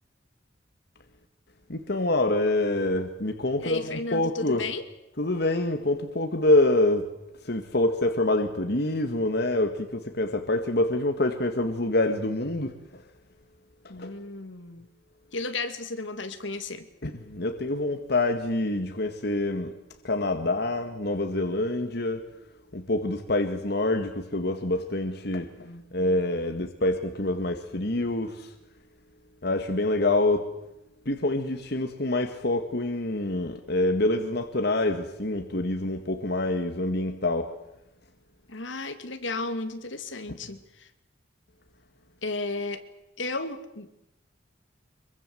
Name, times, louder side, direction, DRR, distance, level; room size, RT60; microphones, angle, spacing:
voice 1, 1.7-4.6 5.2-7.1 7.4-13.0 13.8-14.1 17.0-19.7 20.0-22.2 22.7-28.5 29.4-30.5 31.1-37.5, left 2 dB, 55° left, 7 dB, 1.8 m, -26 dB
voice 2, 3.6-4.8 13.9-14.9 15.3-16.9 25.6-26.3 38.5-40.9 42.2-42.8 43.2-43.9, left 3 dB, 75° left, 9 dB, 2.4 m, -34 dB
25.0 x 23.0 x 7.9 m, 0.86 s
head